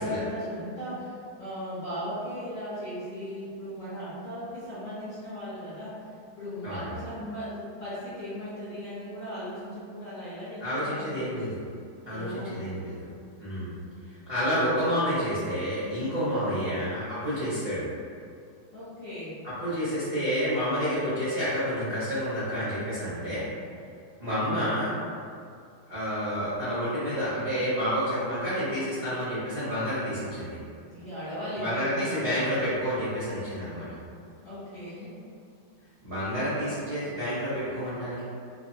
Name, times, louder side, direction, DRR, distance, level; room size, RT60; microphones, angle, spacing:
voice 1, 0.0-6.0 6.4-11.3 12.0-12.6 16.3-16.9 17.5-17.6 18.7-19.3 30.8-32.5 34.1-35.1, equal, 60° left, -13 dB, 0.9 m, -37 dB
voice 2, 10.6-11.6 12.1-12.9 13.4-13.8 14.3-17.8 19.4-23.5 24.2-24.9 25.9-30.6 31.5-33.9 36.0-38.2, equal, 55° right, -14 dB, 0.6 m, -29 dB
3.3 x 2.1 x 2.7 m, 2.3 s
omnidirectional pair, 2.3 m